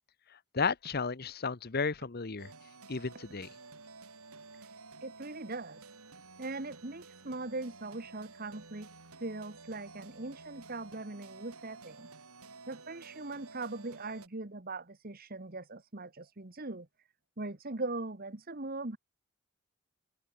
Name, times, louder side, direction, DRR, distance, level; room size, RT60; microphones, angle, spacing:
voice 1, 0.5-2.5 2.9-3.5, left 5 dB, 45° left, 0.9 m, -33 dB
sound 1, 2.4-14.3, right 3 dB, 90° right, 6.0 m, -52 dB
voice 2, 5.0-5.8 6.4-8.9 9.2-12.1 12.7-16.9 17.4-19.0, right 2 dB, 45° right, 1.5 m, -40 dB
head